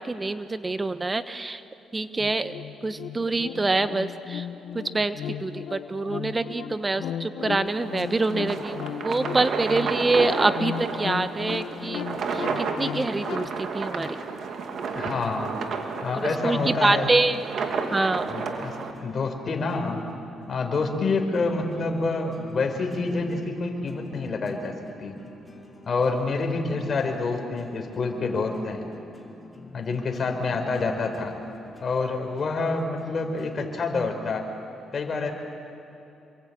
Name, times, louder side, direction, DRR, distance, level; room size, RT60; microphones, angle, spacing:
voice 1, 0.0-1.6 1.9-2.5 2.8-4.5 4.7-12.0 12.3-14.2 16.2-17.4 17.9-18.3, right 3 dB, 20° right, 11 dB, 1.0 m, -26 dB
sound 1, 2.2-13.5, left 9 dB, 80° left, 1.2 m, -36 dB
sound 2, 7.7-18.9, right 5 dB, 60° right, 2.5 m, -32 dB
voice 2, 14.9-15.5 16.0-17.1 18.3-18.8 19.0-20.0 20.5-24.7 25.0-25.1 25.9-28.8 29.7-31.3 31.8-34.5 34.9-35.3, left 3 dB, 45° left, 3 dB, 4.3 m, -27 dB
sound 3, 16.9-33.8, left 2 dB, 10° left, 4.0 m, -46 dB
28.0 x 23.0 x 8.6 m, 2.8 s
cardioid pair, 90°, 0 cm